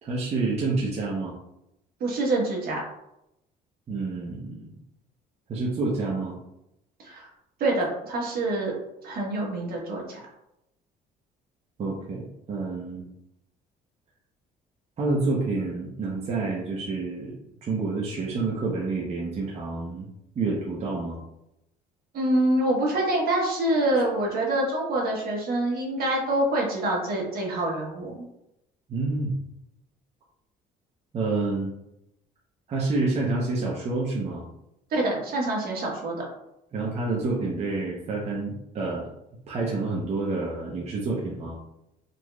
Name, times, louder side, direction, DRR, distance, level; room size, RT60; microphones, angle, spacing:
voice 1, 0.0-1.3 3.9-4.7 5.5-6.4 11.8-13.0 15.0-17.3 17.6-20.1 20.3-21.2 28.9-29.3 31.1-31.7 32.7-34.4 36.7-39.1 39.5-41.6, right 3 dB, 40° right, -4 dB, 0.8 m, -28 dB
voice 2, 2.0-2.8 7.0-7.3 7.6-8.7 9.0-10.2 22.1-28.2 34.9-36.2, right 1 dB, 65° right, -2 dB, 1.3 m, -26 dB
3.9 x 3.0 x 2.3 m, 0.83 s
cardioid pair, 110°, 17 cm